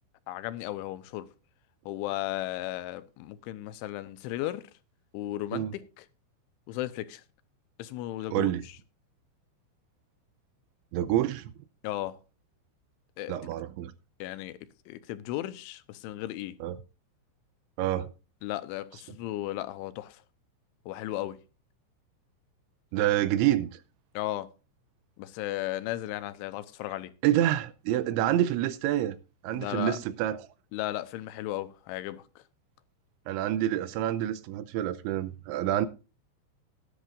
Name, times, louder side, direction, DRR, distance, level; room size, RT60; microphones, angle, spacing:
voice 1, 0.3-1.3 1.9-4.7 5.1-6.1 6.7-7.2 7.8-8.5 11.8-12.2 13.2-13.4 14.2-14.6 14.9-16.6 18.4-20.2 20.9-21.4 24.1-24.5 25.2-27.1 29.5-30.0 30.7-32.4, left 15 dB, 85° left, 3.1 m, -35 dB
voice 2, 8.3-8.6 10.9-11.5 13.3-13.9 16.6-16.8 17.8-18.1 22.9-23.8 27.2-29.2 29.4-30.5 33.3-35.9, right 13 dB, 80° right, 2.8 m, -27 dB
17.5 x 10.0 x 2.5 m
omnidirectional pair, 5.6 m